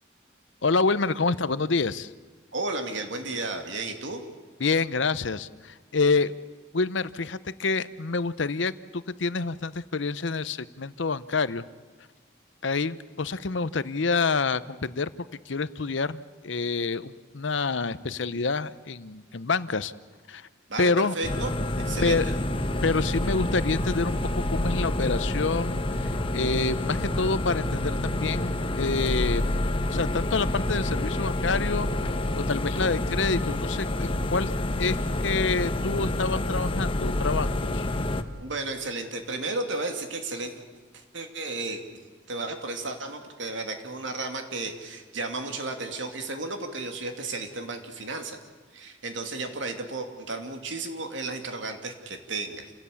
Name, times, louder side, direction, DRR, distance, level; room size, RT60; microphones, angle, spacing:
voice 1, 0.6-2.1 4.6-6.3 6.7-11.6 12.6-15.1 15.5-19.9 20.3-20.5 20.8-21.2 22.0-22.3 22.8-24.2 24.5-29.7 29.9-34.5 34.8-35.0 35.2-37.9, left 4 dB, 75° left, 16 dB, 0.8 m, -27 dB
voice 2, 2.5-4.2 20.7-22.2 38.3-40.5 40.9-41.8 42.3-48.4 48.7-52.7, right 2 dB, 75° right, 5 dB, 2.8 m, -33 dB
sound 1, 21.2-38.2, left 1 dB, 30° left, 1.0 m, -28 dB
28.5 x 17.0 x 8.6 m, 1.4 s
head